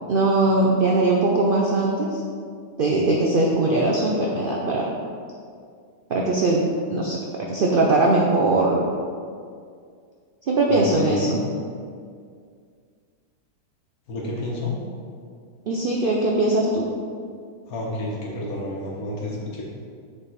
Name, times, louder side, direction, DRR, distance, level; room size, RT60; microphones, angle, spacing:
voice 1, 0.1-2.2 2.8-4.9 6.1-6.6 6.9-7.2 7.5-8.9 10.5-11.4 15.7-16.9, right 2 dB, 70° right, -2 dB, 0.5 m, -20 dB
voice 2, 10.7-11.3 14.1-14.7 17.7-19.6, left 1 dB, 65° left, -3 dB, 1.5 m, -30 dB
6.9 x 3.5 x 4.1 m, 2.2 s
omnidirectional pair, 1.7 m